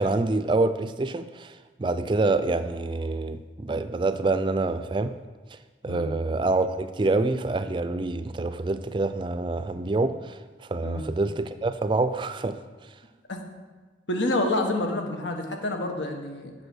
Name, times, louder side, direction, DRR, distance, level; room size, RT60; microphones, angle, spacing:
voice 1, 0.0-1.5 1.8-5.2 5.8-10.4 10.7-12.6, right 2 dB, 25° right, 11 dB, 0.3 m, -26 dB
voice 2, 14.1-16.5, left 2 dB, 90° left, 4 dB, 1.4 m, -28 dB
8.0 x 7.0 x 6.1 m, 1.3 s
head